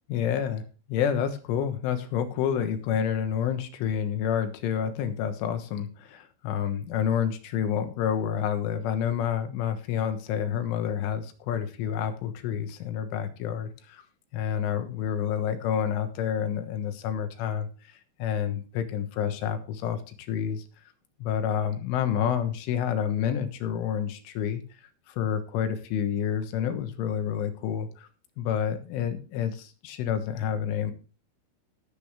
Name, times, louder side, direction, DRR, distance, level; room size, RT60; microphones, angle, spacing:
voice 1, 0.1-14.0 14.3-20.7 21.2-24.6 25.1-28.1 28.4-30.9, left 8 dB, 80° left, 8 dB, 3.8 m, -29 dB
16.0 x 8.4 x 3.5 m, 0.36 s
omnidirectional pair, 5.5 m